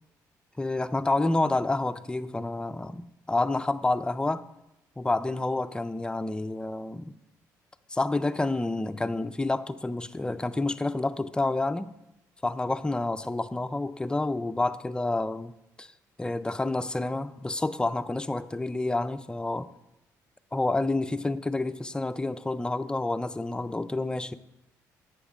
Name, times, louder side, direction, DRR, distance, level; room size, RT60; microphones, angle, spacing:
voice 1, 0.6-4.5 5.0-7.1 7.9-11.9 12.4-15.9 16.2-19.7 20.5-24.3, left 2 dB, 10° left, 0.4 m, -29 dB
8.0 x 7.1 x 3.6 m
supercardioid pair, 75°, 7 cm